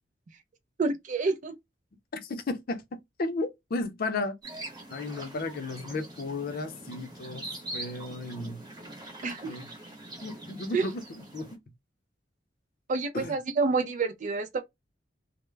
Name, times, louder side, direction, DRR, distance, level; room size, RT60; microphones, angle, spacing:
voice 1, 0.8-1.6 9.2-9.6 10.7-10.9 12.9-14.6, right 4 dB, 40° right, 0.4 m, -28 dB
voice 2, 2.2-2.8 3.2-4.3 4.9-7.5 7.7-8.6 9.4-9.7 10.2-11.5 13.1-13.3, left 2 dB, 50° left, 0.5 m, -34 dB
sound 1, 4.4-11.5, right 1 dB, 20° right, 0.9 m, -43 dB
2.2 x 2.0 x 3.1 m
head